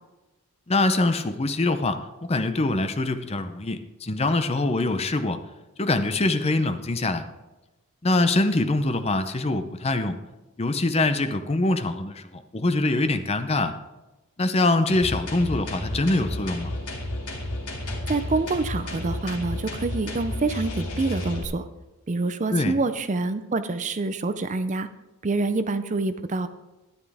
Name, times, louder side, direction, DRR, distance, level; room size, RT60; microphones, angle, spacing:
voice 1, 0.7-5.4 5.8-7.2 8.0-10.2 10.6-13.7 14.4-16.7 22.5-22.7, left 2 dB, 30° left, 9 dB, 0.6 m, -24 dB
sound 1, 14.9-21.4, left 1 dB, 85° left, 2.5 m, -32 dB
voice 2, 18.1-21.6 22.1-24.9 25.2-26.5, right 3 dB, 35° right, 11 dB, 0.5 m, -26 dB
13.0 x 11.0 x 3.5 m, 1.1 s
head